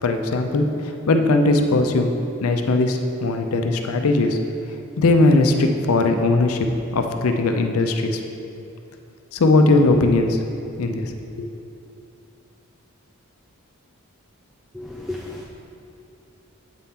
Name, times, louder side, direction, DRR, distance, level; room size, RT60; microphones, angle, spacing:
voice 1, 0.0-2.1 2.4-4.4 5.0-6.6 6.9-8.2 9.3-10.4 10.8-11.1 11.4-11.5, left 2 dB, 85° left, 5 dB, 0.5 m, -19 dB
voice 2, 14.7-15.5, left 2 dB, ahead, -4 dB, 0.4 m, -33 dB
8.1 x 4.2 x 3.7 m, 2.7 s
head